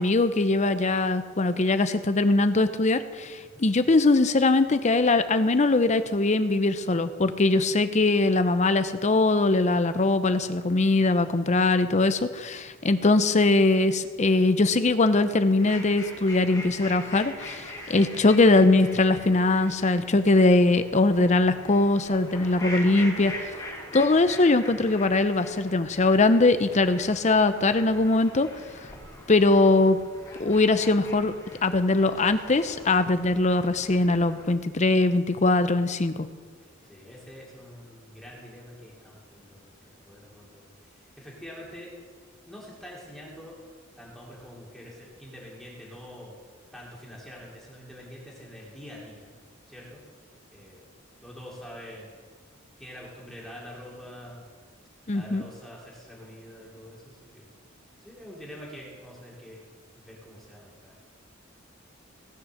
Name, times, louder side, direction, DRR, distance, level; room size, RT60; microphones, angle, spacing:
voice 1, 0.0-23.5 23.9-28.5 29.3-30.0 30.4-31.3 31.6-36.3 55.1-55.4, left 2 dB, 35° left, 11 dB, 0.7 m, -21 dB
sound 1, 15.5-34.5, left 1 dB, 20° left, 3.3 m, -42 dB
voice 2, 36.9-41.9 42.5-43.5 44.0-46.4 46.7-49.3 49.7-50.0 50.5-50.9 51.2-52.1 52.8-54.4 55.1-57.5 58.0-59.6 59.9-60.9, equal, ahead, -5 dB, 3.0 m, -45 dB
17.5 x 6.3 x 6.4 m, 1.5 s
head